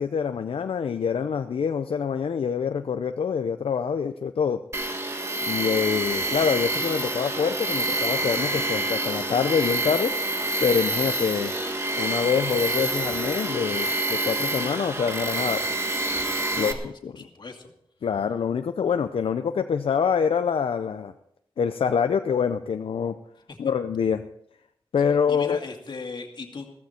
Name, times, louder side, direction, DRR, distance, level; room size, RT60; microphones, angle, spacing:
voice 1, 0.0-4.6 5.4-10.1 10.6-11.5 11.9-15.6 16.5-17.1 18.0-21.1 21.6-23.1 23.6-24.3 24.9-25.6, left 6 dB, 80° left, 8 dB, 0.6 m, -25 dB
Tools, 4.7-16.7, right 2 dB, 30° right, 1.5 m, -27 dB
voice 2, 16.5-16.8 17.2-17.7 23.5-23.6 25.3-26.7, left 4 dB, 55° left, 2 dB, 2.3 m, -38 dB
15.5 x 14.5 x 4.3 m, 0.76 s
wide cardioid pair, 135°, 9 cm